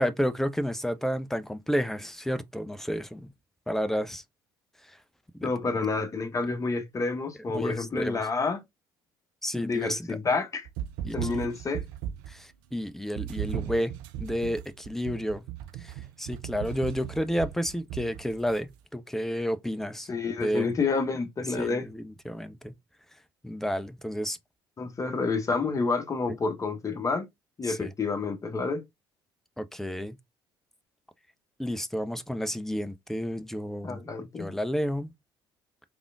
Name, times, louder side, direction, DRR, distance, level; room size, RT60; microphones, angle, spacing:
voice 1, 0.0-3.3 3.7-4.2 5.4-5.8 7.5-8.2 9.4-10.2 11.0-11.5 12.3-15.4 15.8-20.1 20.4-20.7 21.6-22.7 23.4-24.4 26.3-26.4 27.6-27.9 29.6-30.2 31.6-34.0 34.4-35.1, equal, 5° left, 0.5 m, -31 dB
voice 2, 5.4-8.6 9.5-10.7 11.1-11.8 20.1-21.8 24.8-27.3 27.6-28.8 33.8-34.5, left 4 dB, 25° left, 1.1 m, -29 dB
sound 1, 10.6-12.4 13.1-18.6, right 11 dB, 65° right, 0.5 m, -37 dB
3.5 x 3.5 x 2.3 m
figure-of-eight pair, 55°, 12 cm